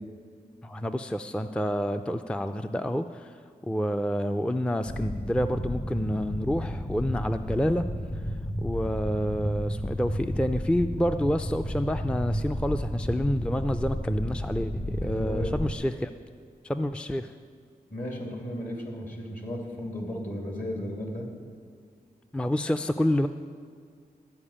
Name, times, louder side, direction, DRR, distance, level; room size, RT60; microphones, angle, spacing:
voice 1, 0.6-3.4 3.6-7.8 8.6-16.1 16.6-17.3 22.3-23.3, equal, 5° left, 8 dB, 0.4 m, -28 dB
sound 1, 4.9-15.7, equal, 35° left, 1.1 m, -32 dB
voice 2, 15.0-15.5 17.9-21.3, left 1 dB, 55° left, 0 dB, 2.5 m, -35 dB
13.0 x 4.9 x 8.6 m, 2.1 s
cardioid pair, 60°, 16 cm